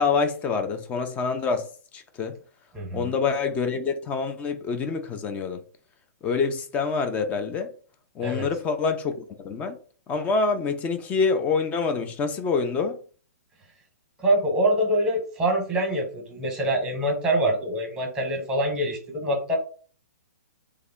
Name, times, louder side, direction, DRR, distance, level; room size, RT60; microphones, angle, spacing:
voice 1, 0.0-1.7 1.9-2.4 2.9-5.6 6.2-7.7 8.2-9.8 10.1-13.0, left 4 dB, 15° left, 0.3 m, -26 dB
voice 2, 2.7-3.1 8.2-8.5 14.2-19.6, right 1 dB, 10° right, 0.9 m, -25 dB
3.4 x 2.1 x 3.5 m
hypercardioid pair, 150°, 9 cm